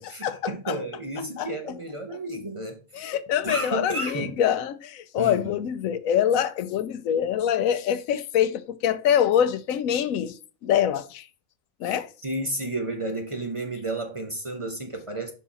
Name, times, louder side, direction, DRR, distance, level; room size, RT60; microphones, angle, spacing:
voice 1, 0.0-3.1 3.4-4.4 5.2-5.6 11.8-12.0 12.2-15.3, right 2 dB, 25° right, 0.8 m, -32 dB
voice 2, 2.9-10.3 10.6-11.2 11.8-12.1, left 9 dB, 80° left, 1.0 m, -24 dB
5.5 x 4.6 x 4.1 m
omnidirectional pair, 1.4 m